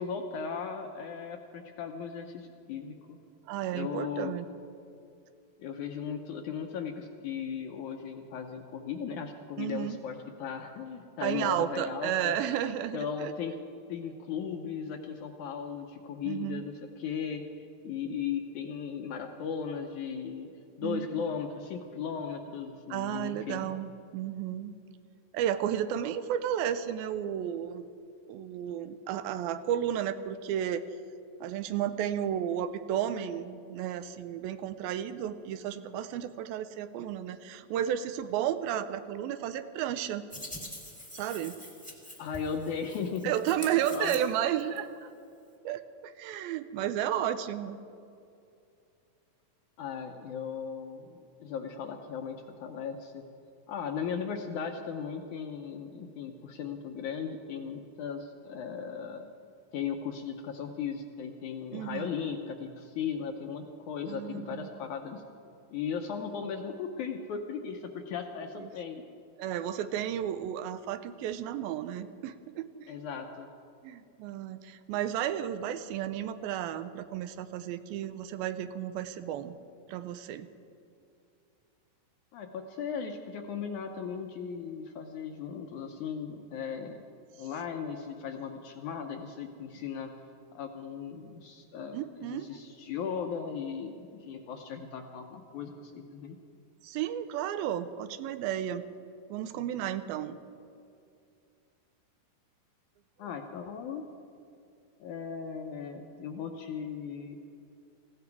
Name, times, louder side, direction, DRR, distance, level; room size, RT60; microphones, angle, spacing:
voice 1, 0.0-3.2 3.7-4.4 5.6-12.4 12.9-13.6 13.9-20.5 20.8-23.7 42.2-43.3 43.6-44.2 49.8-53.3 53.7-59.3 59.7-65.2 65.7-69.0 72.9-73.5 82.3-87.0 87.4-90.1 90.5-96.4 103.2-104.0 105.0-107.4, left 6 dB, 75° left, 4 dB, 1.9 m, -37 dB
voice 2, 3.5-4.5 9.6-10.0 11.2-13.3 16.3-16.7 20.8-21.2 22.9-24.8 25.3-27.9 28.3-30.8 31.4-40.3 41.1-41.6 43.2-45.1 45.6-47.8 61.7-62.1 64.1-64.7 68.6-68.7 69.4-72.9 73.8-79.6 79.9-80.5 91.9-92.5 96.8-98.8 99.3-100.4, right 10 dB, 85° right, 11 dB, 2.5 m, -33 dB
Hands, 40.3-44.8, left 1 dB, 5° left, 0.6 m, -45 dB
19.0 x 16.0 x 4.8 m, 2.5 s
omnidirectional pair, 4.2 m